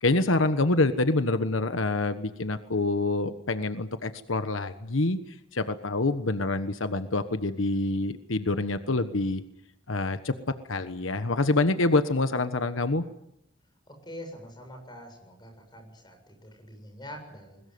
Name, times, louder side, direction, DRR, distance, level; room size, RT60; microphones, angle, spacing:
voice 1, 0.0-9.4 9.9-10.3 10.7-13.0, left 2 dB, 90° left, 10 dB, 1.3 m, -26 dB
voice 2, 13.9-17.6, equal, 20° left, 3 dB, 7.3 m, -45 dB
21.5 x 20.5 x 9.6 m, 0.80 s
head